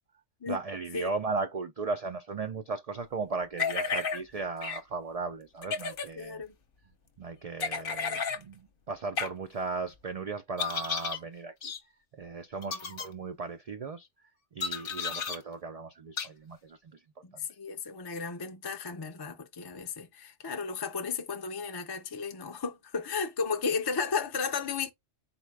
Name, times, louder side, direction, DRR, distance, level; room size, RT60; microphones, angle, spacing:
voice 1, 0.5-6.4 7.2-11.7 12.1-14.1 14.5-17.0 17.3-17.4, right 4 dB, 75° right, 0.3 m, -36 dB
sound 1, 3.6-4.2 4.6-4.8 5.6-6.1 7.6-8.4 9.2-9.3 10.6-11.2 11.6-11.8 12.6-13.1 14.6-15.4 16.2-16.3, left 5 dB, 55° left, 0.8 m, -32 dB
voice 2, 6.2-6.5 12.7-12.8 15.1-15.2 17.2-24.9, left 5 dB, 35° left, 0.4 m, -34 dB
4.2 x 2.1 x 4.6 m
omnidirectional pair, 1.2 m